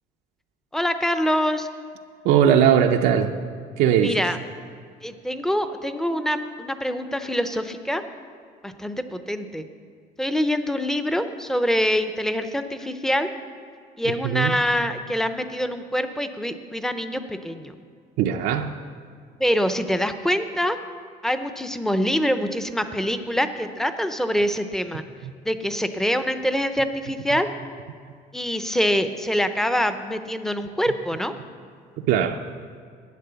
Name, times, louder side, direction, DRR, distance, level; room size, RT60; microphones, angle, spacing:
voice 1, 0.7-1.7 4.0-4.4 5.0-8.0 8.6-9.6 10.2-13.3 14.0-17.7 19.4-20.8 21.2-25.0 25.4-27.5 28.3-31.3, equal, 5° left, 9 dB, 0.6 m, -25 dB
voice 2, 2.2-3.3 3.8-4.2 14.1-14.6 18.2-18.7 25.2-25.3 32.0-32.4, right 9 dB, 80° right, 3 dB, 0.6 m, -19 dB
11.5 x 8.8 x 6.8 m, 2.2 s
cardioid pair, 140°, 16 cm